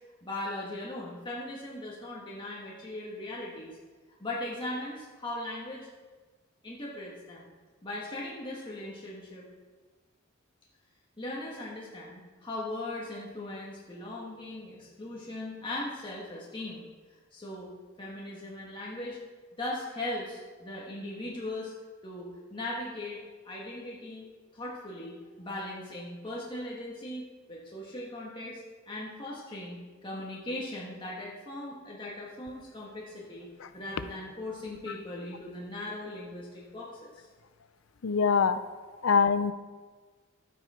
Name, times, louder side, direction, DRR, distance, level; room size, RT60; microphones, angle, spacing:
voice 1, 0.2-3.8 4.2-5.9 6.6-7.5 7.8-9.5 11.2-16.8 17.3-17.7 18.0-19.2 19.6-21.7 22.0-37.3, left 1 dB, 25° left, -5 dB, 1.7 m, -39 dB
voice 2, 38.0-38.6 39.0-39.5, left 5 dB, 70° left, 11 dB, 0.5 m, -23 dB
12.0 x 9.3 x 4.4 m, 1.4 s
head